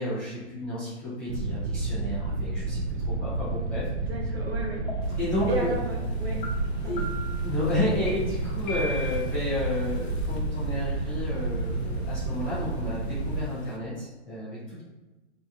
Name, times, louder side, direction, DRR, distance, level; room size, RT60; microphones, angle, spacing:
voice 1, 0.0-2.8 3.2-3.8 5.2-5.7 6.8-7.0 7.4-14.8, left 1 dB, 5° left, -15 dB, 0.5 m, -31 dB
sound 1, 1.3-13.5, right 2 dB, 85° right, 0.5 m, -30 dB
voice 2, 4.1-5.1 5.5-6.4 6.8-7.0, right 2 dB, 60° right, -2 dB, 1.2 m, -33 dB
sound 2, 4.9-5.0 5.4-5.8 6.4-6.5 7.0-7.4 8.1-8.2 8.7-9.3, left 1 dB, 45° left, 1.1 m, -36 dB
Waves surf, 5.0-13.8, left 3 dB, 65° left, 0.7 m, -51 dB
3.3 x 2.9 x 2.4 m, 1.1 s
hypercardioid pair, 150°, 35 cm